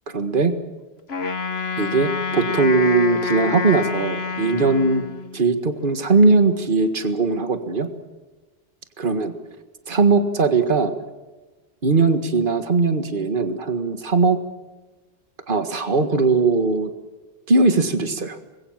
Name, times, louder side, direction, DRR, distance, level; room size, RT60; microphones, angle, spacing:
voice 1, 0.1-0.5 1.8-5.0 5.3-7.9 9.0-9.3 9.9-10.9 11.8-14.4 15.5-16.9 17.5-18.4, right 3 dB, 50° right, 8 dB, 1.9 m, -19 dB
Wind instrument woodwind instrument, 1.1-5.5, left 5 dB, 70° left, 1.6 m, -27 dB
25.5 x 22.0 x 7.4 m, 1.2 s
omnidirectional pair, 1.1 m